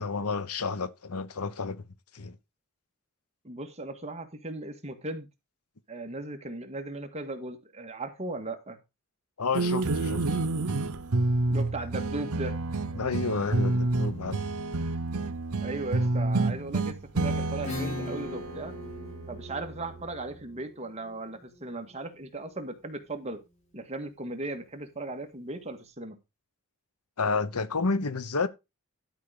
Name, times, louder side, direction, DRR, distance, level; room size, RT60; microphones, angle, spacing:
voice 1, 0.0-1.8 2.1-2.4 9.4-10.4 13.0-14.4 27.2-28.5, left 4 dB, 90° left, 1.0 m, -30 dB
voice 2, 3.4-5.3 5.9-8.8 11.5-12.6 15.6-18.8 19.3-23.4 23.7-26.2, right 2 dB, 30° right, 1.8 m, -37 dB
sound 1, 9.5-20.1, right 2 dB, 90° right, 0.9 m, -29 dB
Acoustic guitar / Strum, 17.6-23.0, left 3 dB, 30° left, 3.8 m, -41 dB
12.0 x 5.7 x 5.0 m
head